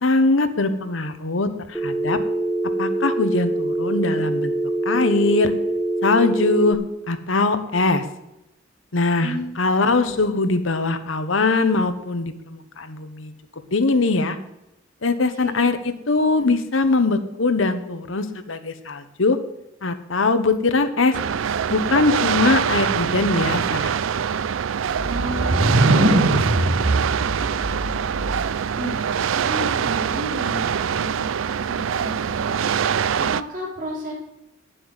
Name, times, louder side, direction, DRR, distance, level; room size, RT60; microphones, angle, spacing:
voice 1, 0.0-2.2 2.8-4.5 4.8-5.5 6.0-6.8 7.1-8.0 8.9-13.3 13.7-14.4 15.0-19.4 19.8-21.2 21.7-23.9, left 3 dB, 80° left, 9 dB, 1.1 m, -21 dB
Telephone, 1.7-6.7, right 2 dB, ahead, 1.2 m, -24 dB
voice 2, 9.8-10.1 15.4-15.7 16.2-16.5 25.0-27.3 27.8-28.1 28.4-32.6 33.2-34.1, right 1 dB, 45° right, -3 dB, 4.2 m, -34 dB
sound 1, 21.1-33.4, right 7 dB, 85° right, 0.4 m, -24 dB
sound 2, 25.0-28.7, right 1 dB, 70° right, 1.4 m, -21 dB
9.7 x 7.7 x 8.2 m, 0.88 s
head